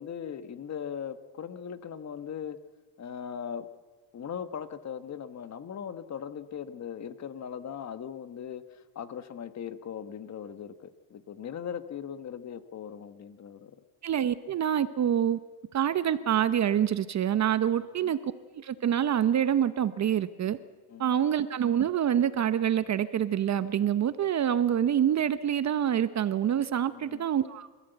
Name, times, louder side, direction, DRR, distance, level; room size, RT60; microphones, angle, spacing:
voice 1, 0.0-2.6 3.0-3.7 4.1-13.8 17.8-18.2 20.9-21.1 26.9-27.3, left 8 dB, 35° left, 11 dB, 1.3 m, -39 dB
voice 2, 14.0-15.4 15.7-18.2 18.5-20.6 21.0-27.7, right 9 dB, 35° right, 14 dB, 0.8 m, -26 dB
28.0 x 14.5 x 8.0 m, 1.4 s
cardioid pair, 115°, 49 cm